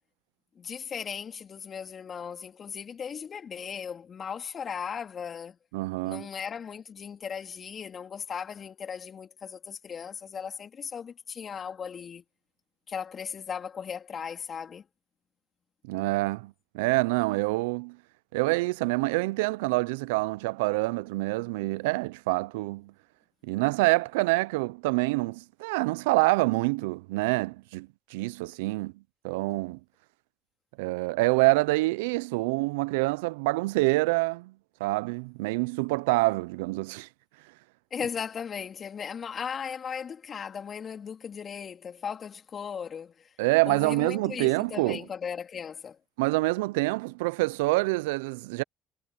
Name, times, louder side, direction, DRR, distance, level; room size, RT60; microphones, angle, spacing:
voice 1, 0.6-5.6 6.0-12.2 12.9-14.8 37.9-43.3 43.6-46.0, left 7 dB, 45° left, 3.6 m, -37 dB
voice 2, 5.7-6.3 15.8-18.0 18.3-22.9 23.4-28.9 29.2-29.8 30.8-34.5 34.8-37.1 43.4-45.0 46.2-48.6, right 23 dB, 85° right, 0.5 m, -26 dB
hypercardioid pair, 60°, 0 cm